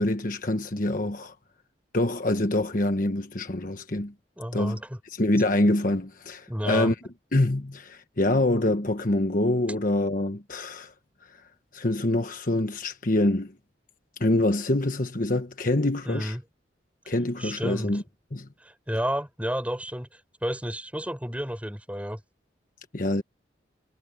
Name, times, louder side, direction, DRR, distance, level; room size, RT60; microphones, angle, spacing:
voice 1, 0.0-1.3 1.9-4.1 4.5-4.8 5.1-6.9 7.3-10.9 11.3-11.4 11.7-13.6 14.2-16.4 17.1-18.0 18.3-18.5 22.9-23.2, left 1 dB, 45° left, 1.3 m, -25 dB
voice 2, 4.4-5.0 6.5-6.9 16.1-16.4 17.4-17.9 18.6-22.2, equal, 10° right, 6.0 m, -31 dB
head